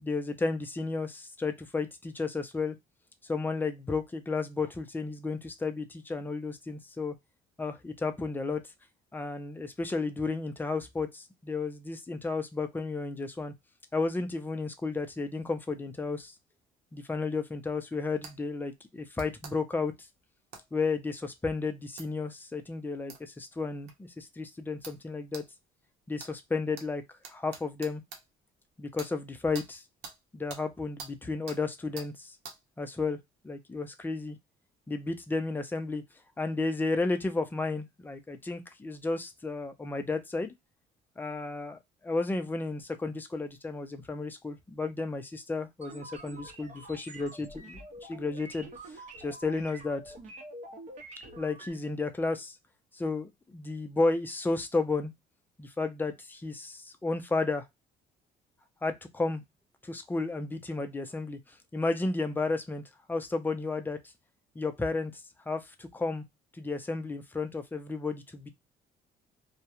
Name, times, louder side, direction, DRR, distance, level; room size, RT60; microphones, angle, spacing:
voice 1, 0.0-2.8 3.2-7.2 7.6-8.6 9.1-13.5 13.9-16.3 16.9-19.9 20.7-25.4 26.1-28.0 28.8-29.8 30.3-32.4 32.8-33.2 33.4-34.4 34.9-36.0 36.4-40.5 41.2-47.8 48.1-48.7 49.2-50.1 51.4-52.6 52.9-55.1 55.6-57.6 58.8-59.4 59.8-62.8 63.1-64.0 64.6-66.2 66.5-68.5, left 3 dB, 10° left, 0.4 m, -33 dB
sound 1, 18.2-18.4 19.2-19.5 20.5-20.7 22.0-22.1 23.1-23.2 23.9-24.0 24.8-25.0 25.3-25.5 26.2-26.3 26.8-26.9 27.2-28.2 29.0-29.1 29.5-29.7 30.0-30.2 30.5-30.6 31.0-31.1 31.5-31.6 32.0-32.1 32.4-32.6, right 5 dB, 75° right, 0.7 m, -44 dB
sound 2, 45.8-51.7, right 1 dB, 45° right, 0.8 m, -46 dB
2.3 x 2.1 x 2.8 m
cardioid pair, 110°, 17 cm